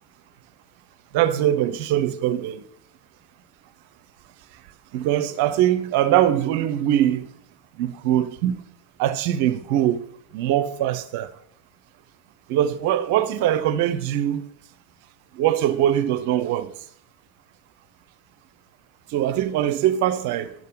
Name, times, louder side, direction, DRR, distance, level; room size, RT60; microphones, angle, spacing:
voice 1, 1.1-2.6 4.9-7.3 7.8-8.6 9.0-10.0 10.3-11.3 12.5-14.5 15.3-16.7 19.1-20.5, right 11 dB, 60° right, 0.8 m, -22 dB
11.0 x 6.7 x 5.3 m
figure-of-eight pair, 85°, 0 cm